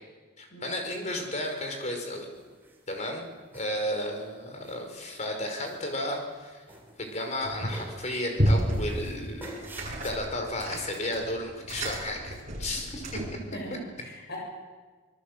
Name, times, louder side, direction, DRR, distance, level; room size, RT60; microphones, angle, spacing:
voice 1, 0.4-2.3 2.9-3.3 3.5-6.6 7.0-9.7 10.0-13.2, left 1 dB, 35° left, 4 dB, 4.8 m, -33 dB
sound 1, 2.3-3.0 3.5-4.2 4.6-5.2 5.6-6.4 6.7-7.4 7.7-8.2 8.7-10.1, right 1 dB, 10° right, 3.9 m, -47 dB
sound 2, 7.4-7.9 8.3-13.5, equal, 35° right, 6.5 m, -31 dB
voice 2, 13.5-14.4, equal, 55° left, -1 dB, 6.7 m, -41 dB
26.0 x 21.0 x 8.0 m, 1.4 s
head